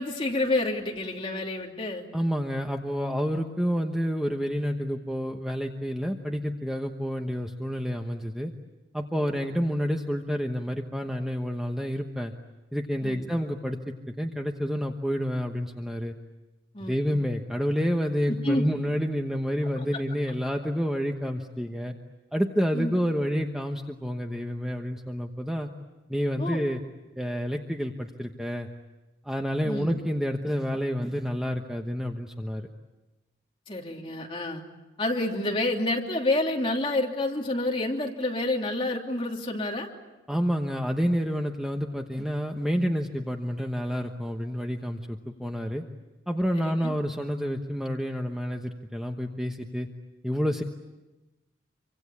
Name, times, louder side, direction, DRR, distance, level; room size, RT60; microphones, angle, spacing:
voice 1, 0.0-2.1 9.2-9.4 13.0-13.2 16.7-17.1 18.4-18.6 19.8-20.0 22.7-22.9 26.4-26.6 29.6-29.9 33.7-34.6 35.0-39.9 46.5-46.9, left 2 dB, 30° left, 0 dB, 3.0 m, -29 dB
voice 2, 2.1-8.5 8.9-12.3 12.7-16.1 16.9-21.9 22.3-25.7 26.1-26.8 27.2-28.7 29.2-32.7 40.3-45.8 46.3-49.9 50.2-50.6, equal, 5° right, 3 dB, 1.1 m, -29 dB
27.0 x 25.0 x 8.6 m, 1.1 s
head